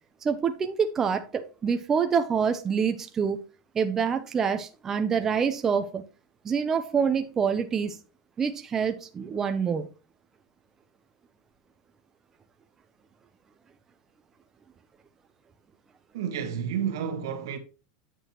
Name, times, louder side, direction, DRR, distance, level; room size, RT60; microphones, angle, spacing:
voice 1, 0.2-3.4 3.7-6.0 6.4-8.0 8.4-9.9, right 6 dB, 20° right, 0.7 m, -26 dB
voice 2, 16.1-17.6, right 8 dB, 85° right, 1.5 m, -30 dB
9.0 x 6.3 x 3.0 m
supercardioid pair, 140°, 2 cm